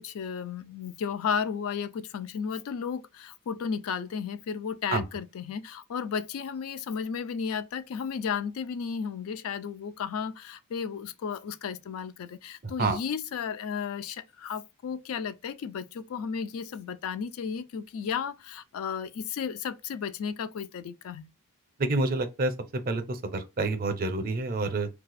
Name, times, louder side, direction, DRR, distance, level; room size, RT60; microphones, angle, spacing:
voice 1, 0.0-21.3, left 6 dB, 70° left, 0.3 m, -34 dB
voice 2, 21.8-22.5 22.9-24.9, right 2 dB, 40° right, 0.6 m, -28 dB
2.4 x 2.3 x 4.0 m
head